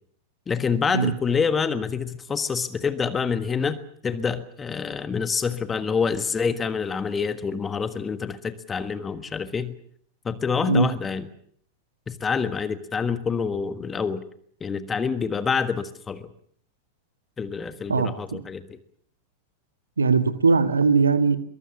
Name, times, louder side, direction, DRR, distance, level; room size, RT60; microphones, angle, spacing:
voice 1, 0.5-3.8 4.0-9.7 10.2-11.3 12.1-14.2 14.6-16.3 17.4-18.8, left 5 dB, 20° left, 12 dB, 1.4 m, -27 dB
voice 2, 20.0-21.4, right 4 dB, 75° right, 12 dB, 1.7 m, -19 dB
23.0 x 23.0 x 7.3 m, 0.62 s
figure-of-eight pair, 90°, 0 cm